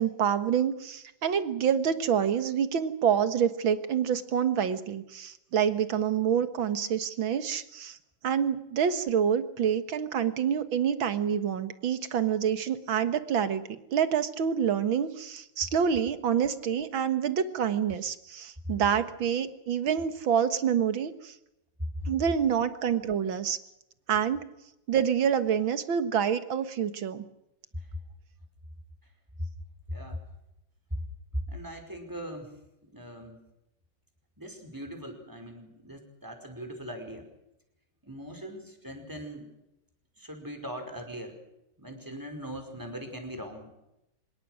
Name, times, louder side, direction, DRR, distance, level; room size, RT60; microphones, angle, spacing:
voice 1, 0.0-8.0 8.2-13.6 13.9-21.4 22.1-23.6 24.1-24.4 24.9-27.2, right 8 dB, 80° right, 11 dB, 2.3 m, -27 dB
voice 2, 29.9-30.2 31.5-32.5 32.8-33.4 34.4-37.2 38.0-39.5 40.2-41.3 41.8-43.7, equal, 10° right, 4 dB, 5.1 m, -40 dB
26.0 x 21.5 x 6.4 m, 0.86 s
omnidirectional pair, 2.1 m